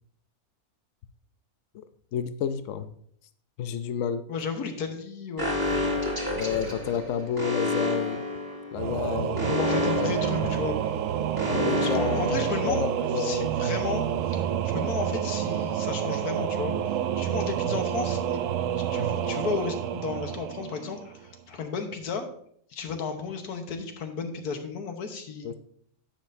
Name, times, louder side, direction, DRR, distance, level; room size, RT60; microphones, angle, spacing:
voice 1, 2.1-2.9 3.6-4.2 6.3-8.2 8.7-9.7 10.0-10.5 11.5-13.5 22.9-23.0 25.4-25.5, left 8 dB, 65° left, 10 dB, 0.8 m, -31 dB
voice 2, 4.3-5.5 5.8-6.0 9.4-10.7 11.8-16.7 17.1-18.4 18.7-22.2 22.7-25.5, left 5 dB, 85° left, 5 dB, 1.6 m, -34 dB
Alarm, 5.4-13.1, left 2 dB, 15° right, 1.5 m, -30 dB
Singing / Musical instrument, 8.7-21.3, right 10 dB, 70° right, 0.8 m, -28 dB
10.5 x 7.6 x 2.7 m, 0.63 s
omnidirectional pair, 1.6 m